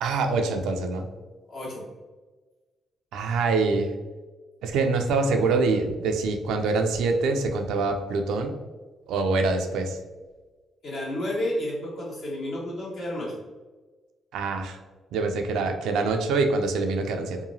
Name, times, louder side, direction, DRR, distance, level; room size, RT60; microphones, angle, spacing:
voice 1, 0.0-1.1 3.1-3.9 4.6-8.5 9.1-10.0 14.3-14.8 15.1-17.4, right 3 dB, 80° right, 5 dB, 0.3 m, -25 dB
voice 2, 1.5-1.8 10.8-13.4, left 1 dB, 65° left, -5 dB, 1.3 m, -31 dB
2.9 x 2.3 x 2.6 m, 1.3 s
supercardioid pair, 65°, 0 cm